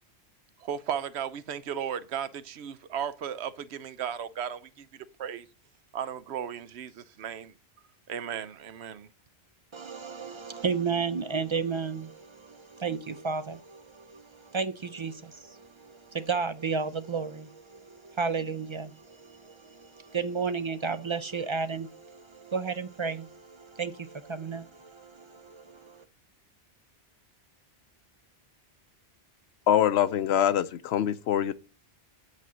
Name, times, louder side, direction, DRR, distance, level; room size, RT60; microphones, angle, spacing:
voice 1, 0.6-5.5 5.9-7.5 8.1-9.1, right 8 dB, 90° right, 1.0 m, -35 dB
voice 2, 9.7-26.0, right 5 dB, 40° right, 0.4 m, -33 dB
voice 3, 29.7-31.5, left 10 dB, 85° left, 0.9 m, -24 dB
8.4 x 4.2 x 6.1 m
omnidirectional pair, 1.1 m